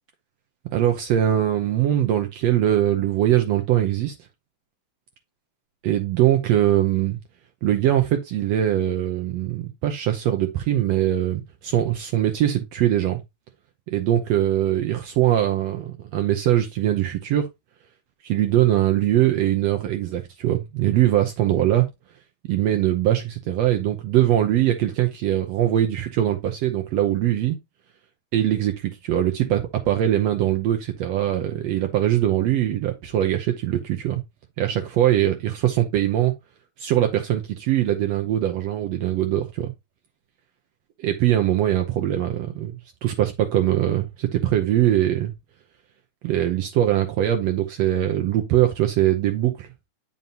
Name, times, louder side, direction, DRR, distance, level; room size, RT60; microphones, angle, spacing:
voice 1, 0.7-4.1 5.8-7.2 7.6-13.2 13.9-17.5 18.2-21.9 22.5-27.6 28.3-34.2 34.6-36.3 36.8-39.7 41.0-45.3 46.2-49.7, right 12 dB, 70° right, 1.7 m, -22 dB
9.1 x 5.4 x 2.8 m
omnidirectional pair, 3.5 m